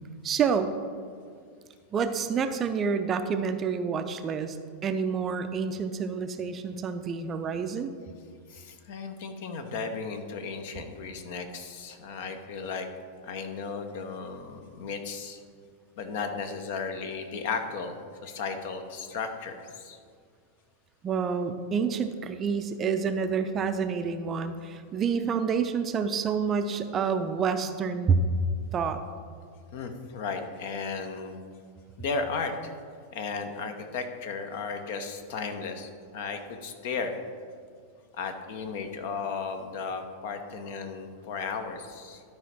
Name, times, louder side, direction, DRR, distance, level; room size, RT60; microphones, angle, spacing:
voice 1, 0.2-0.7 1.9-4.6 4.8-7.9 21.0-28.2 28.7-29.0, right 6 dB, 25° right, 8 dB, 0.5 m, -28 dB
voice 2, 8.5-12.9 13.2-15.4 16.0-18.0 18.2-20.0 29.7-31.4 32.0-32.7 33.1-37.2 38.2-42.2, left 5 dB, 50° left, 7 dB, 0.8 m, -35 dB
12.0 x 4.9 x 4.3 m, 2.1 s
figure-of-eight pair, 90°, 0 cm